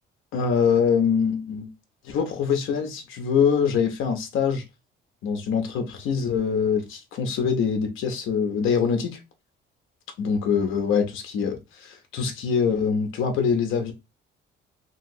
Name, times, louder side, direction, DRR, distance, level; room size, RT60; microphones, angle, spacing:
voice 1, 0.3-1.7 2.0-4.6 5.2-9.2 10.2-13.9, left 6 dB, 75° left, 0.7 m, -24 dB
2.9 x 2.8 x 2.6 m
cardioid pair, 145°, 21 cm